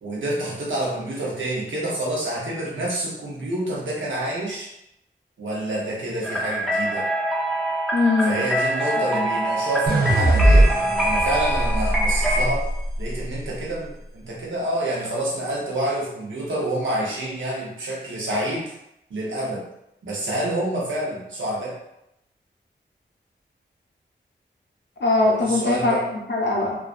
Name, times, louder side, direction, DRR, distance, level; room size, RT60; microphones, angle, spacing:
voice 1, 0.0-4.7 5.4-7.1 8.3-12.7 13.0-18.7 19.1-19.6 20.0-21.8 25.2-26.0, right 1 dB, 85° right, -4 dB, 0.8 m, -28 dB
sound 1, 6.2-12.4, right 1 dB, ahead, 0.5 m, -25 dB
voice 2, 7.9-8.4 9.0-9.4 25.0-26.8, left 2 dB, 65° left, -2 dB, 0.7 m, -22 dB
sound 2, 9.9-13.1, right 1 dB, 50° right, 0.5 m, -20 dB
2.4 x 2.2 x 2.4 m, 0.83 s
cardioid pair, 45°, 19 cm